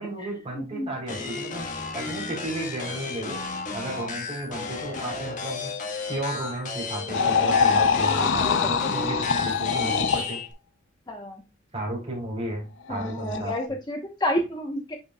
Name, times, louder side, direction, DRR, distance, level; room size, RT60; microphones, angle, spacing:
voice 1, 0.0-1.6 1.9-3.4 3.7-5.7 6.1-10.4 11.7-13.5, right 1 dB, 30° right, 0 dB, 3.9 m, -33 dB
sound 1, 1.1-10.5, left 4 dB, 40° left, 1.5 m, -34 dB
sound 2, 7.1-10.3 12.9-13.7, left 5 dB, 65° left, 0.6 m, -23 dB
voice 2, 11.1-11.4 12.9-15.0, left 1 dB, 20° left, 3 dB, 1.0 m, -30 dB
9.8 x 5.5 x 2.3 m, 0.29 s
head